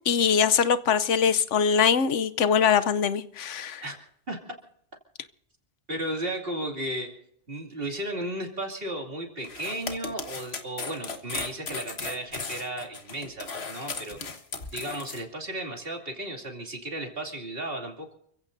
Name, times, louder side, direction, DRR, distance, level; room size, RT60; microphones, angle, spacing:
voice 1, 0.1-3.8, left 7 dB, 85° left, 1.1 m, -22 dB
voice 2, 5.9-7.1 7.5-14.2 14.7-18.2, right 1 dB, 50° right, 2.9 m, -34 dB
sound 1, 9.4-15.2, left 4 dB, 60° left, 1.6 m, -36 dB
29.5 x 15.5 x 2.7 m
omnidirectional pair, 1.2 m